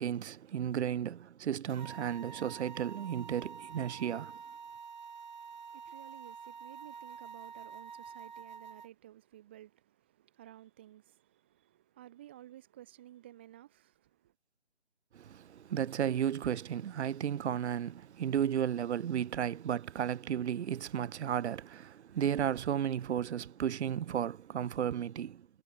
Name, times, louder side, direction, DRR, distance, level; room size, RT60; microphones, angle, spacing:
voice 1, 0.0-4.4 15.1-25.5, right 9 dB, 70° right, 0.5 m, -34 dB
sound 1, 1.7-8.9, right 6 dB, 40° right, 0.7 m, -48 dB
voice 2, 5.4-14.3, right 13 dB, 10° right, 0.9 m, -55 dB
hypercardioid pair, 165°, 34 cm